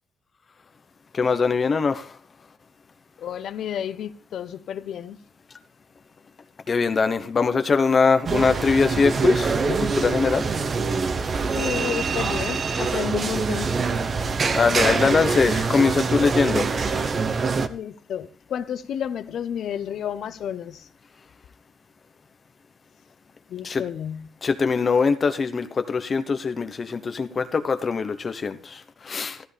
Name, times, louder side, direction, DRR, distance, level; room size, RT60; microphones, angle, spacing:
voice 1, 1.1-2.1 6.7-10.4 14.5-17.0 23.6-23.8 24.4-29.4, left 5 dB, 40° left, 1.0 m, -22 dB
voice 2, 3.2-5.2 11.5-13.7 17.7-20.8 23.5-24.3, left 9 dB, 70° left, 0.9 m, -31 dB
sound 1, 8.2-17.7, right 4 dB, 45° right, 0.9 m, -24 dB
14.0 x 13.5 x 3.5 m
cardioid pair, 90°, 0 cm